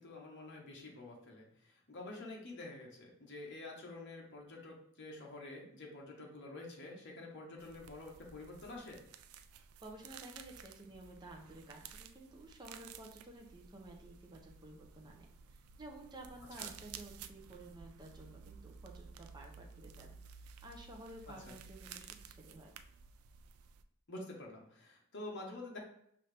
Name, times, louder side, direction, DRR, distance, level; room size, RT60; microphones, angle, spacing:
voice 1, 0.0-9.0 16.6-16.7 21.2-21.5 24.1-25.8, left 2 dB, 55° left, -1 dB, 1.0 m, -48 dB
sound 1, 7.6-23.8, right 6 dB, 80° right, 0.3 m, -54 dB
voice 2, 9.8-15.3 15.5-22.7, right 1 dB, 20° right, 0 dB, 0.6 m, -53 dB
5.5 x 2.7 x 3.3 m, 0.72 s
head